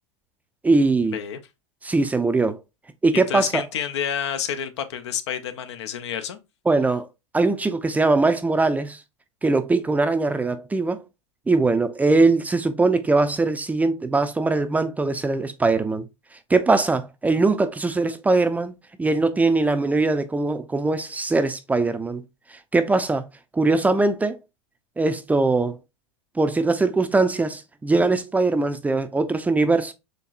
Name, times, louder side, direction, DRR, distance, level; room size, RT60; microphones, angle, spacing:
voice 1, 0.6-1.2 1.8-2.6 3.0-3.6 6.7-7.1 7.3-9.0 9.4-11.0 11.5-16.0 16.5-18.7 19.0-22.2 22.7-23.3 23.5-24.4 25.0-25.8 26.4-29.9, right 3 dB, 10° right, 0.5 m, -21 dB
voice 2, 3.1-6.4, left 8 dB, 80° left, 0.7 m, -29 dB
4.3 x 3.1 x 2.4 m
hypercardioid pair, 110°, 14 cm